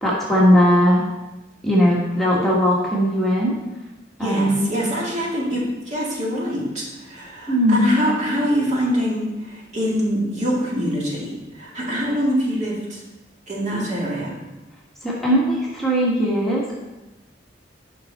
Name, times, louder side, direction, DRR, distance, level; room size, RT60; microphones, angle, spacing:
voice 1, 0.0-1.0 1.6-3.6 4.2-4.7 7.5-7.9 15.0-16.8, equal, ahead, -6 dB, 1.3 m, -18 dB
voice 2, 4.2-13.0 13.5-14.3, equal, 40° right, -4 dB, 2.2 m, -24 dB
10.0 x 5.4 x 4.2 m, 1.1 s
head